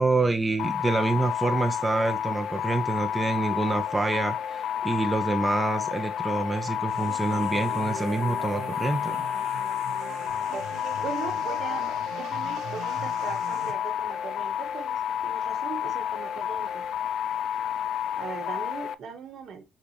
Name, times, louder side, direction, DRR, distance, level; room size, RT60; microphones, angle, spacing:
voice 1, 0.0-9.2, right 2 dB, 15° right, 0.6 m, -27 dB
sound 1, 0.6-18.9, left 9 dB, 70° left, 0.3 m, -30 dB
sound 2, 6.9-13.7, right 6 dB, 90° right, 1.0 m, -41 dB
voice 2, 11.0-11.9 12.1-16.8 18.2-19.6, right 6 dB, 65° right, 1.3 m, -39 dB
6.8 x 2.4 x 3.1 m
cardioid pair, 90°, 0 cm